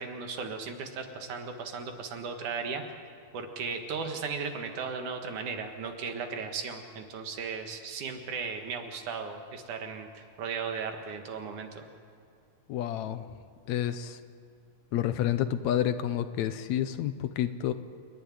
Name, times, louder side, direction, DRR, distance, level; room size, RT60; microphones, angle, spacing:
voice 1, 0.0-3.0 3.3-11.8, right 5 dB, 80° right, 5 dB, 3.2 m, -36 dB
voice 2, 12.7-13.3 13.7-14.2 14.9-17.7, left 11 dB, 75° left, 11 dB, 2.0 m, -29 dB
29.5 x 11.0 x 9.8 m, 2.4 s
omnidirectional pair, 3.5 m